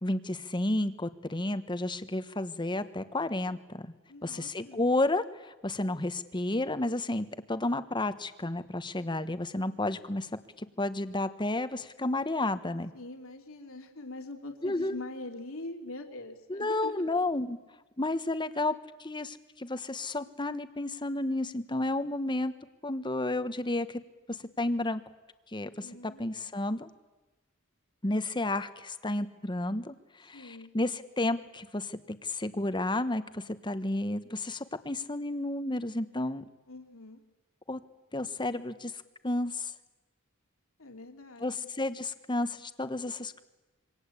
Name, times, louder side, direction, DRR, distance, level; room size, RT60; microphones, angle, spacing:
voice 1, 0.0-3.9 4.2-10.3 10.8-12.9 14.6-15.0 16.5-17.6 18.0-18.7 19.0-22.5 22.8-24.0 24.3-25.0 25.5-26.9 28.0-29.9 30.2-36.4 37.7-37.8 38.1-38.9 39.2-39.7 41.4-43.4, left 2 dB, 20° left, 11 dB, 1.2 m, -31 dB
voice 2, 4.1-4.8 12.9-17.1 25.8-26.5 30.3-30.7 36.7-37.2 40.8-41.7, left 2 dB, 75° left, 4 dB, 2.9 m, -43 dB
26.5 x 24.0 x 8.5 m, 1.1 s
head